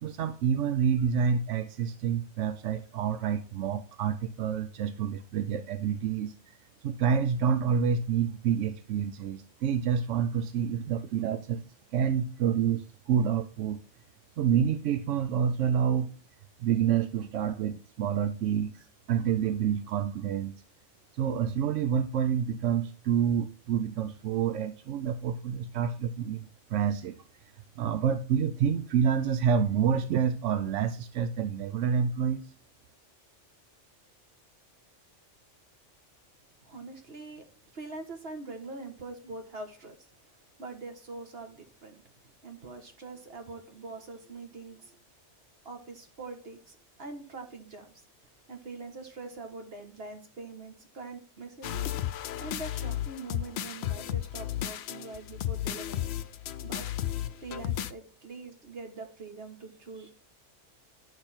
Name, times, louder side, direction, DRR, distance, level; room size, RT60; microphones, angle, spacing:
voice 1, 0.0-6.3 6.8-11.6 11.9-13.8 14.4-16.1 16.6-20.6 21.1-26.4 26.7-27.2 27.8-32.5, right 8 dB, 85° right, 9 dB, 1.0 m, -28 dB
voice 2, 36.6-37.4 37.7-40.1 40.6-42.0 42.4-45.0 45.6-48.0 48.5-51.9 52.4-56.1 56.6-56.8 57.4-60.1, right 3 dB, 55° right, 5 dB, 1.8 m, -43 dB
sound 1, 51.6-57.9, left 12 dB, 65° left, 0.8 m, -33 dB
10.5 x 6.4 x 4.4 m, 0.40 s
omnidirectional pair, 1.2 m